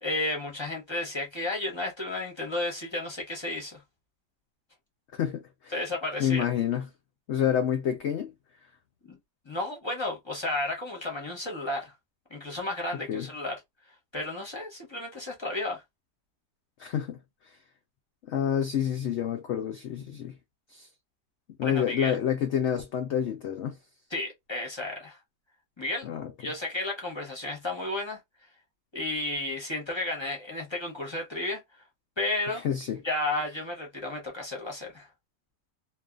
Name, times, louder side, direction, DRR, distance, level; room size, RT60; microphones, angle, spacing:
voice 1, 0.0-3.8 5.7-6.5 9.1-9.2 9.5-11.9 12.3-13.6 14.1-15.8 21.6-22.2 24.1-25.2 25.8-26.1 26.4-28.2 28.9-31.8 32.2-32.6 33.0-35.1, left 2 dB, 30° left, 0.5 m, -32 dB
voice 2, 5.1-5.7 6.2-6.9 7.3-8.3 13.1-13.3 16.8-17.2 18.3-20.3 20.7-20.9 21.6-23.8 26.0-26.3 32.5-33.0, left 9 dB, 90° left, 0.6 m, -28 dB
2.7 x 2.5 x 2.3 m
omnidirectional pair, 1.8 m